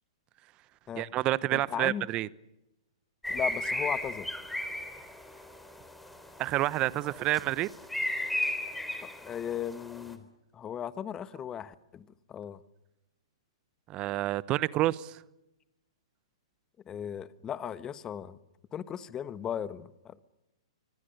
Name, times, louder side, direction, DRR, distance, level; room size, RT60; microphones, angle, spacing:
voice 1, 1.0-2.3 6.4-7.7 13.9-15.2, right 16 dB, 30° right, 0.9 m, -29 dB
voice 2, 1.5-2.1 3.3-4.3 9.0-10.3 10.5-12.6 16.9-18.4 18.7-20.2, left 9 dB, 20° left, 1.3 m, -37 dB
sound 1, 3.2-10.1, left 1 dB, 5° left, 3.6 m, -35 dB
26.0 x 25.0 x 6.7 m
hypercardioid pair, 115°, 3 cm